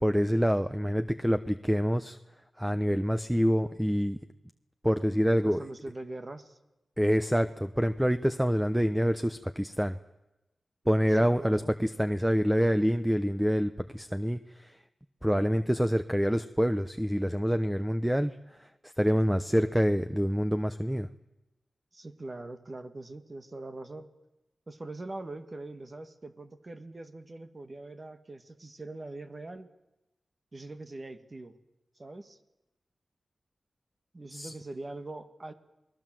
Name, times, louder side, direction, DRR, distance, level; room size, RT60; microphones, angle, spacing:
voice 1, 0.0-2.2 2.6-4.2 4.8-5.6 7.0-10.0 10.9-14.8 15.2-21.1 34.3-34.5, equal, 5° right, 10 dB, 1.0 m, -26 dB
voice 2, 5.4-6.6 11.2-11.7 19.5-19.7 21.9-24.1 24.7-29.7 30.5-31.5 32.0-32.4 34.1-35.5, right 2 dB, 40° right, 8 dB, 2.0 m, -42 dB
28.5 x 20.5 x 7.8 m, 0.96 s
cardioid pair, 60°, 0 cm